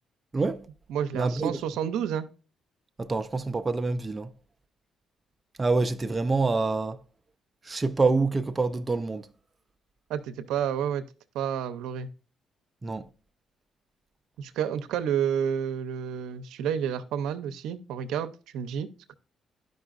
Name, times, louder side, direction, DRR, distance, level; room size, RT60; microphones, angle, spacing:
voice 1, 0.3-0.7 1.1-1.6 3.0-4.3 5.6-7.0 7.6-9.3 12.8-13.1, right 3 dB, 25° right, 0.4 m, -26 dB
voice 2, 0.9-2.3 10.1-11.0 11.3-12.1 14.4-18.9, right 8 dB, 90° right, 0.5 m, -30 dB
11.5 x 5.3 x 2.4 m
cardioid pair, 90°, 0 cm